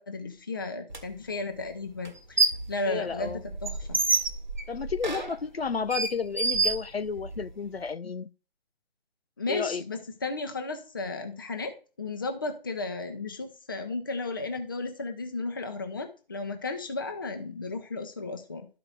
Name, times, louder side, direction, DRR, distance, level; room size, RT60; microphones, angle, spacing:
voice 1, 0.0-4.0 9.4-18.7, left 3 dB, 20° left, 0.7 m, -34 dB
sound 1, 0.9-1.0 2.0-2.7 3.1-7.4, right 4 dB, 45° right, 1.2 m, -28 dB
voice 2, 2.9-3.4 4.7-8.3 9.5-9.8, left 5 dB, 75° left, 0.6 m, -32 dB
12.5 x 4.8 x 2.4 m
figure-of-eight pair, 150°, 31 cm